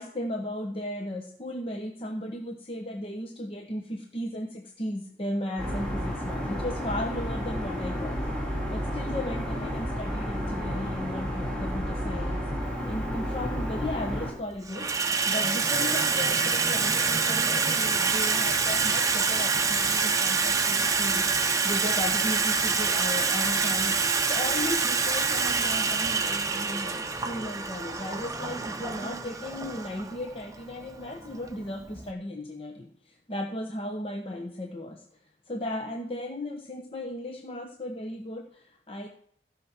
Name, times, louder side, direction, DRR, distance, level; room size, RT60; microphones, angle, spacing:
voice 1, 0.0-14.9 15.3-35.0 35.5-39.1, left 1 dB, 30° left, 3 dB, 1.0 m, -36 dB
sound 1, 5.6-14.3, equal, 5° left, 3.8 m, -31 dB
Water tap faucet / Sink (filling or washing), 12.7-12.9 13.8-14.2 14.5-32.1, right 5 dB, 20° right, 0.8 m, -26 dB
15.5 x 5.8 x 5.9 m, 0.66 s
head